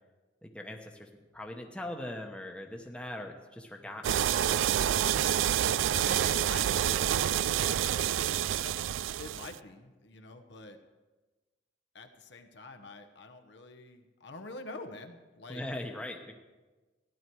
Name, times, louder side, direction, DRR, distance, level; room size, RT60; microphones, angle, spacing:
voice 1, 0.4-4.2 15.5-16.3, left 1 dB, 5° left, 2 dB, 1.0 m, -40 dB
sound 1, 4.0-9.6, right 10 dB, 90° right, 0.3 m, -28 dB
voice 2, 5.9-7.5 8.5-8.7 9.0-10.8 11.9-15.6, left 3 dB, 60° left, 5 dB, 1.0 m, -47 dB
15.0 x 11.0 x 4.6 m, 1.2 s
head